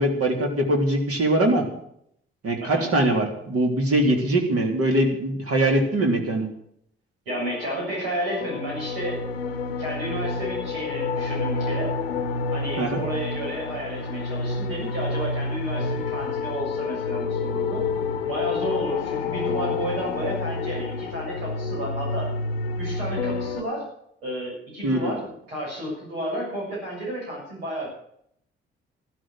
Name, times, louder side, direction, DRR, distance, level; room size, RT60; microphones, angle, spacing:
voice 1, 0.0-1.6 2.4-6.4 12.8-13.0 24.8-25.1, right 1 dB, 50° right, 3 dB, 3.7 m, -22 dB
voice 2, 2.6-2.9 7.3-9.3 9.8-11.9 12.5-17.9 18.2-22.3 22.8-23.9 24.2-27.9, right 1 dB, 80° right, -3 dB, 7.3 m, -32 dB
sound 1, 7.3-23.6, left 4 dB, 90° left, 0.8 m, -29 dB
13.0 x 12.5 x 6.5 m, 0.70 s
figure-of-eight pair, 45°, 29 cm